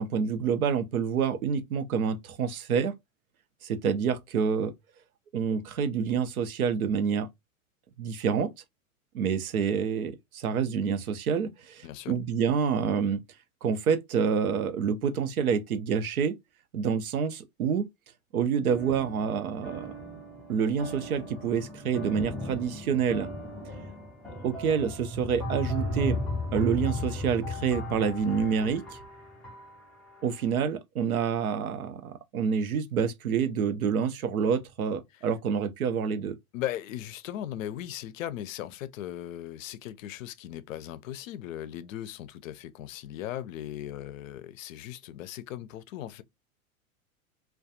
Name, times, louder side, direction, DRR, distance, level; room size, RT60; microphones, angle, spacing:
voice 1, 0.0-2.9 3.6-4.7 5.3-7.3 8.0-8.5 9.1-13.2 13.6-16.4 16.7-17.9 18.3-19.9 20.5-23.3 24.4-26.2 26.5-29.0 30.2-36.4, right 7 dB, 85° right, 0.6 m, -27 dB
voice 2, 11.8-12.2 35.1-35.3 36.5-46.2, left 12 dB, 65° left, 0.5 m, -38 dB
sound 1, 18.7-30.1, left 1 dB, ahead, 0.4 m, -36 dB
2.3 x 2.2 x 2.7 m
hypercardioid pair, 110°, 42 cm